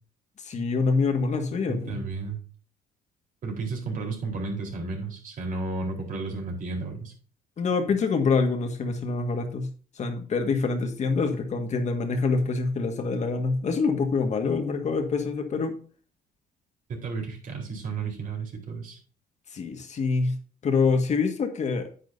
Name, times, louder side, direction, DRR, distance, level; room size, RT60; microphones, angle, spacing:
voice 1, 0.4-2.0 7.6-9.7 10.0-15.8 19.5-20.3 20.6-21.9, left 4 dB, 45° left, 5 dB, 1.8 m, -25 dB
voice 2, 1.7-2.4 3.4-7.1 17.0-19.0, right 3 dB, 55° right, 0 dB, 4.2 m, -33 dB
9.4 x 9.0 x 2.8 m, 0.40 s
cardioid pair, 110°, 17 cm